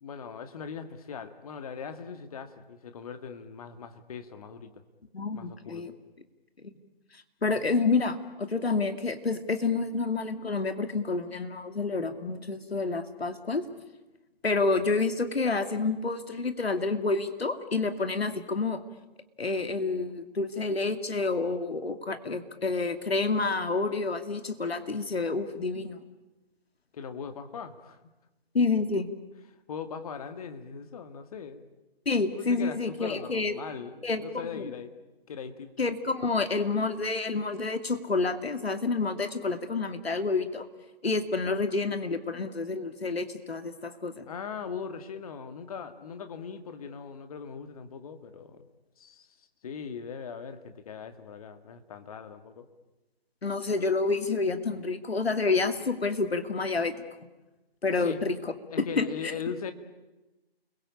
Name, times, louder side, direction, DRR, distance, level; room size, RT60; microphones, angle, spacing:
voice 1, 0.0-4.7 5.3-5.9 26.9-28.0 29.7-31.6 32.3-34.9 35.3-35.9 44.3-48.6 49.0-49.3 49.6-52.7 58.0-58.2 58.7-59.7, left 6 dB, 35° left, 9 dB, 2.1 m, -40 dB
voice 2, 5.1-5.9 6.6-6.7 7.4-13.6 14.4-18.8 19.4-26.0 28.5-29.1 32.1-33.5 34.0-34.7 35.8-40.7 41.0-44.2 53.4-57.0 57.8-58.4 58.8-59.0, left 3 dB, 75° left, 9 dB, 2.5 m, -28 dB
29.5 x 22.5 x 8.6 m, 1.1 s
figure-of-eight pair, 150°, 31 cm